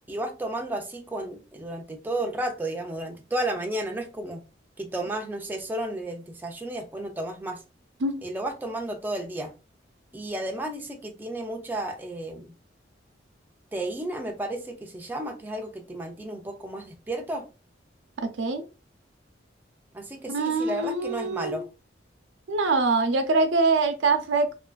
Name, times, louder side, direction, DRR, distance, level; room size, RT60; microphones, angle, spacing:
voice 1, 0.1-4.4 4.8-7.6 8.2-9.5 10.1-12.5 13.7-17.5 19.9-21.7, right 1 dB, 10° right, 3 dB, 0.3 m, -32 dB
voice 2, 18.2-18.6 20.3-21.6 22.5-24.5, right 3 dB, 85° right, 7 dB, 0.5 m, -24 dB
2.5 x 2.4 x 2.2 m, 0.31 s
head